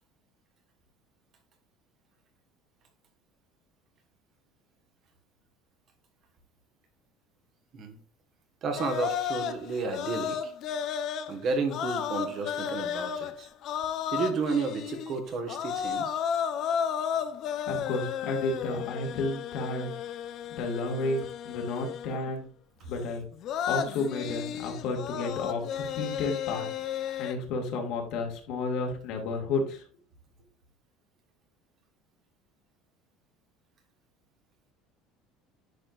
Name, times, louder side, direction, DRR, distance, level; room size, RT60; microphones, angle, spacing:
voice 1, 8.6-10.5 11.3-13.5 14.1-16.2, right 4 dB, 45° right, 5 dB, 1.5 m, -32 dB
sound 1, 8.8-15.2 15.5-22.3 23.3-27.3, left 8 dB, 50° left, 0.7 m, -33 dB
voice 2, 17.7-19.9 20.5-22.5 22.9-23.2 23.7-26.7 27.0-29.8, left 3 dB, 65° left, 2 dB, 2.1 m, -32 dB
9.9 x 4.5 x 2.5 m, 0.42 s
cardioid pair, 135°, 0 cm